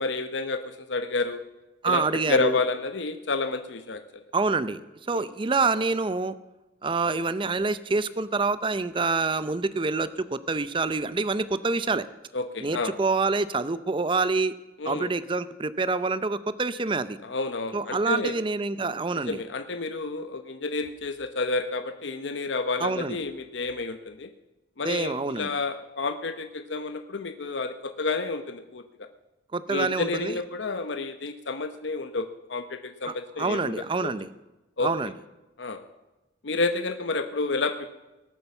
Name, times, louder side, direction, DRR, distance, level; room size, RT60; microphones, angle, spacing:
voice 1, 0.0-1.4 1.8-2.0 2.3-4.0 5.1-5.2 12.3-12.9 14.8-15.1 17.2-18.3 19.3-24.3 24.8-28.8 29.7-34.1 34.8-34.9 35.6-35.8 36.4-37.9, left 3 dB, 80° left, 8 dB, 0.9 m, -30 dB
voice 2, 1.8-2.6 4.3-4.8 5.1-6.3 6.8-12.0 12.6-14.6 14.8-17.2 17.7-19.4 22.8-23.2 24.8-25.5 29.5-30.4 33.1-34.3 34.8-35.1, right 3 dB, 25° right, 15 dB, 0.5 m, -26 dB
18.5 x 8.7 x 7.0 m, 1.0 s
head